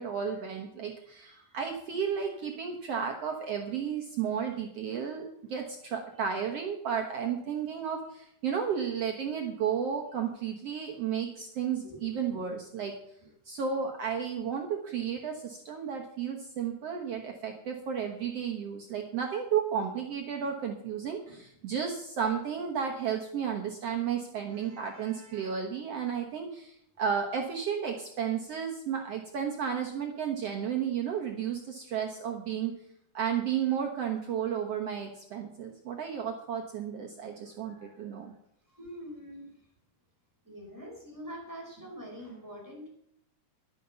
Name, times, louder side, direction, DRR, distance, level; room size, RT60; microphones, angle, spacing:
voice 1, 0.0-12.9 13.5-32.7 33.1-38.3, right 7 dB, 60° right, 2 dB, 1.9 m, -33 dB
voice 2, 37.3-38.0 38.7-39.6 40.4-42.9, equal, 5° right, -3 dB, 4.6 m, -45 dB
12.0 x 9.6 x 6.9 m, 0.72 s
omnidirectional pair, 3.8 m